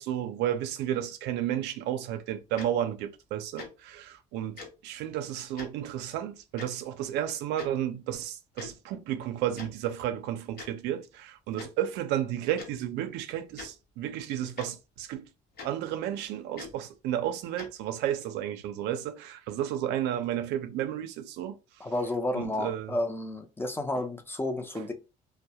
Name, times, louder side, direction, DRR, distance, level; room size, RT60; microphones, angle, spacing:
voice 1, 0.0-15.3 15.6-21.6 22.3-23.0 23.9-24.0 24.7-24.8, right 11 dB, 90° right, 0.4 m, -32 dB
Tick-tock, 2.6-2.7 3.6-3.7 4.6-4.7 5.6-5.7 6.6-6.7 7.6-7.7 8.6-8.7 9.6-9.7 10.6-10.7 11.6-11.7 12.6-12.7 13.5-13.7 14.6-14.7 15.6-15.7 16.6-16.7 17.6-17.7, left 4 dB, 70° left, 0.8 m, -42 dB
voice 2, 21.8-24.9, left 1 dB, 15° left, 0.4 m, -31 dB
2.2 x 2.0 x 2.7 m
cardioid pair, 110°, 17 cm